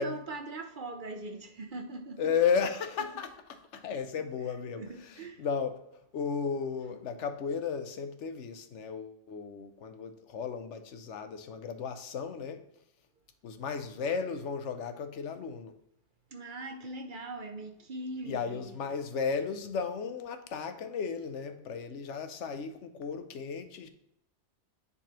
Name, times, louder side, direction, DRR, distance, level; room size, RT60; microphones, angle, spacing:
voice 1, 0.0-2.2 4.8-5.4 16.3-18.8, right 2 dB, 50° right, 0.8 m, -41 dB
voice 2, 2.2-5.8 6.1-12.6 13.4-15.8 18.2-23.9, left 6 dB, 80° left, 1.0 m, -34 dB
10.0 x 4.0 x 2.9 m
omnidirectional pair, 1.2 m